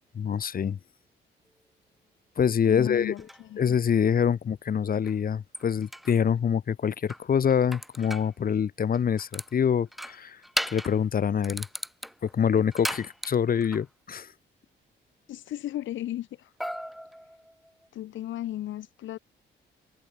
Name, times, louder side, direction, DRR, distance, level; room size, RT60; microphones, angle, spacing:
voice 1, 0.1-0.8 2.4-3.1 3.6-10.4 10.7-11.7 12.2-14.3, left 7 dB, 45° left, 1.7 m, -25 dB
voice 2, 2.7-3.6 15.3-16.5 17.9-19.2, left 13 dB, 75° left, 1.3 m, -35 dB
sound 1, 3.2-3.4 5.0-5.1 5.5-6.2 7.1-8.3 8.9-9.5 9.9-11.0 11.4-13.8 16.6-17.9, equal, ahead, 1.7 m, -36 dB
cardioid pair, 90°, 20 cm